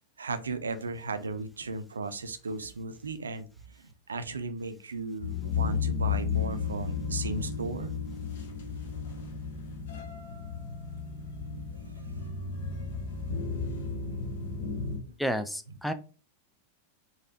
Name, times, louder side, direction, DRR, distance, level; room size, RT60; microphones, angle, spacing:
voice 1, 0.2-3.5 3.7-8.0, right 3 dB, 70° right, 11 dB, 0.4 m, -36 dB
sound 1, 5.2-15.0, left 6 dB, 60° left, 0.7 m, -33 dB
voice 2, 15.2-15.9, equal, ahead, 8 dB, 0.4 m, -30 dB
4.0 x 2.7 x 2.7 m, 0.35 s
figure-of-eight pair, 90°, 0 cm